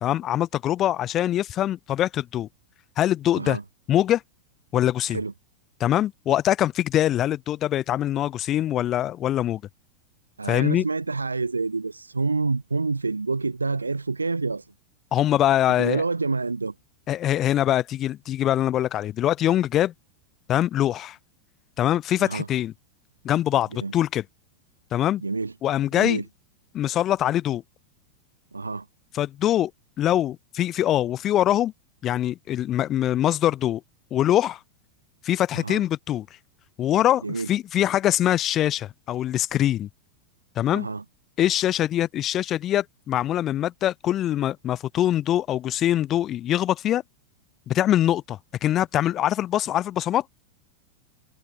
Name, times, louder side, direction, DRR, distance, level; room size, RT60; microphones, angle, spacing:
voice 1, 0.0-2.5 3.0-3.6 3.9-4.2 4.7-5.2 5.8-9.6 10.5-10.8 15.1-16.0 17.1-19.9 20.5-21.2 21.8-22.7 23.2-24.2 24.9-25.2 25.6-26.2 26.7-27.6 29.1-29.7 30.0-31.7 32.0-33.8 34.1-34.6 35.2-36.3 36.8-39.9 40.6-40.9 41.4-47.0 47.7-50.2, left 12 dB, 30° left, 0.3 m, -23 dB
voice 2, 10.4-14.7 15.8-16.7 22.2-22.5 23.8-23.9 25.2-25.5 25.9-26.2 28.5-28.9 35.5-35.8 37.2-37.5 40.7-41.0, right 3 dB, 80° right, 0.7 m, -27 dB
figure-of-eight pair, 90°, 0 cm